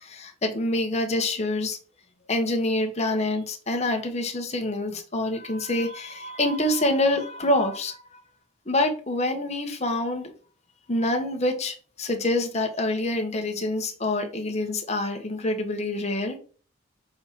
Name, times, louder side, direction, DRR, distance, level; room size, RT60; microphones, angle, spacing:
voice 1, 0.0-1.8 2.3-8.0 8.7-10.3 10.9-16.4, left 1 dB, 30° left, 1.2 m, -26 dB
6.6 x 4.3 x 4.2 m
head